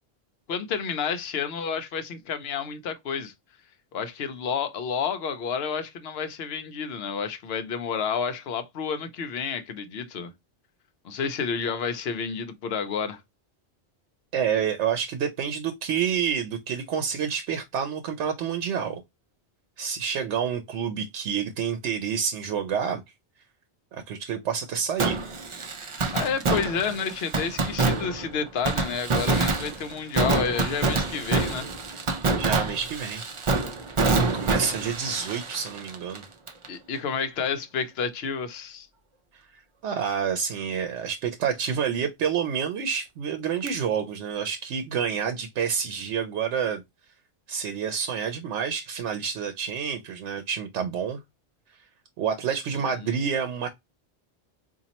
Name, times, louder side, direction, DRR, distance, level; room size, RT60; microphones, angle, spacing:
voice 1, 0.5-3.3 3.9-10.3 11.0-13.2 25.9-31.7 36.7-38.9 53.0-53.1, left 6 dB, 70° left, 0.9 m, -30 dB
voice 2, 14.3-19.0 19.8-23.0 23.9-25.2 32.4-33.3 33.9-34.1 34.3-36.2 39.3-39.4 39.8-46.8 47.5-51.2 52.2-53.7, right 7 dB, 90° right, 0.9 m, -28 dB
Fireworks, 25.0-36.7 36.9-37.0 43.7-43.8, right 3 dB, 40° right, 0.4 m, -27 dB
4.1 x 2.5 x 2.8 m
omnidirectional pair, 1.1 m